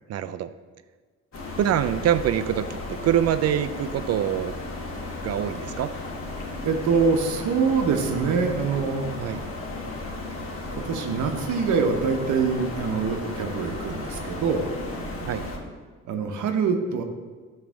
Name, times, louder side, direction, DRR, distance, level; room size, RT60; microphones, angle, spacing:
voice 1, 0.1-0.5 1.6-2.8 3.0-4.5 5.2-5.9 9.2-9.4 15.3-15.4, right 10 dB, 55° right, 13 dB, 0.4 m, -24 dB
sound 1, 1.3-15.6, left 2 dB, 45° left, 1.8 m, -34 dB
voice 2, 6.6-9.1 10.7-14.7 16.1-17.0, right 5 dB, 75° right, 6 dB, 0.9 m, -24 dB
8.8 x 3.3 x 6.2 m, 1.5 s
cardioid pair, 90°, 30 cm